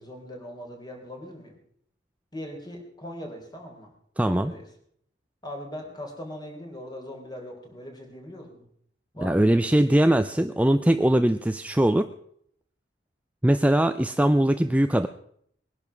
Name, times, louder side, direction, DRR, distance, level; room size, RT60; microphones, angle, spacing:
voice 1, 0.0-1.6 2.3-3.9 4.2-4.7 5.4-8.7 9.1-9.9, equal, 25° left, 2 dB, 4.1 m, -40 dB
voice 2, 4.2-4.5 9.2-12.1 13.4-15.1, right 1 dB, 10° right, 9 dB, 0.5 m, -21 dB
21.0 x 11.0 x 5.9 m, 0.67 s
head